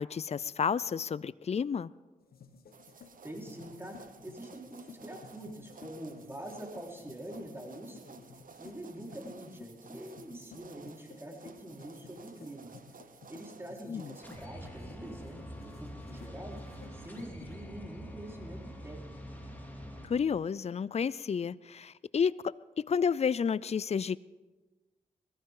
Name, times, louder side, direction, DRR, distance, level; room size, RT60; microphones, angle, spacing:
voice 1, 0.0-1.9 13.9-14.1 20.0-24.2, left 6 dB, 45° left, 20 dB, 0.4 m, -31 dB
sound 1, 2.2-17.5, left 6 dB, 85° left, 1.3 m, -56 dB
sound 2, 2.7-14.5, right 5 dB, 65° right, 1.0 m, -55 dB
voice 2, 2.9-8.2 8.5-12.7 13.3-16.6 16.9-19.2, right 1 dB, 15° right, -1 dB, 4.3 m, -45 dB
sound 3, 14.2-20.1, equal, 10° left, 4.1 m, -45 dB
21.5 x 14.5 x 3.8 m, 1.2 s
cardioid pair, 45°, 15 cm